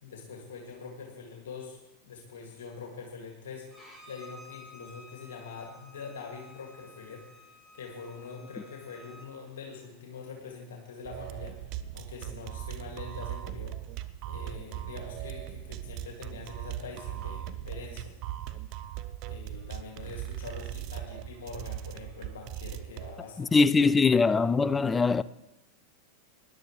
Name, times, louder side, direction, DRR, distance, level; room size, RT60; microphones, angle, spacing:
voice 1, 0.0-11.6 11.9-13.8 14.3-18.1 19.3-24.0, left 5 dB, 70° left, 2.2 m, -44 dB
Bowed string instrument, 3.7-9.3, left 2 dB, 5° right, 4.9 m, -53 dB
sound 1, 11.0-23.1, right 13 dB, 50° right, 0.6 m, -39 dB
voice 2, 23.4-25.2, left 4 dB, 15° left, 0.4 m, -22 dB
20.0 x 11.0 x 3.2 m
figure-of-eight pair, 90°, 0 cm